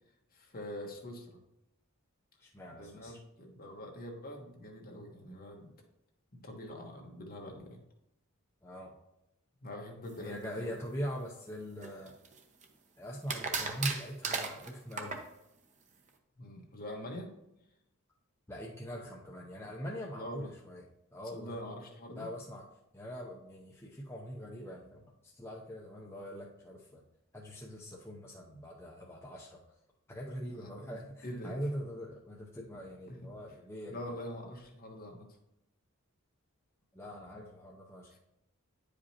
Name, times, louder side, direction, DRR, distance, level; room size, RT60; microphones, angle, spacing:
voice 1, 0.3-1.4 2.7-5.7 6.3-7.8 9.6-10.7 16.4-17.3 20.1-20.5 21.3-22.3 30.5-30.7 31.2-31.6 33.1-33.3 33.9-35.4, left 1 dB, 45° left, 1 dB, 1.3 m, -44 dB
voice 2, 2.4-3.2 8.6-8.9 10.2-12.1 13.0-15.2 18.5-21.5 22.1-22.6 22.9-27.0 27.3-29.6 30.1-34.0 36.9-38.2, equal, 10° left, -3 dB, 0.6 m, -42 dB
sound 1, 11.8-12.6 13.3-15.3, right 4 dB, 35° right, 0.7 m, -36 dB
9.5 x 5.0 x 2.9 m, 0.85 s
head